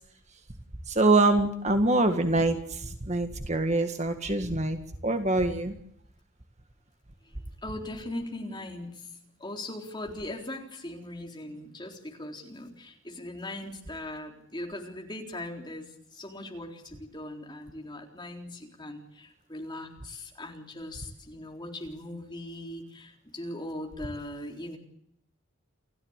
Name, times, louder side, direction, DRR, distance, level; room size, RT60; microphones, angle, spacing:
voice 1, 0.9-4.8 5.0-5.7, right 2 dB, 30° right, 7 dB, 1.7 m, -24 dB
voice 2, 7.6-24.8, left 1 dB, 20° left, 2 dB, 3.9 m, -40 dB
29.5 x 14.0 x 8.2 m, 0.72 s
head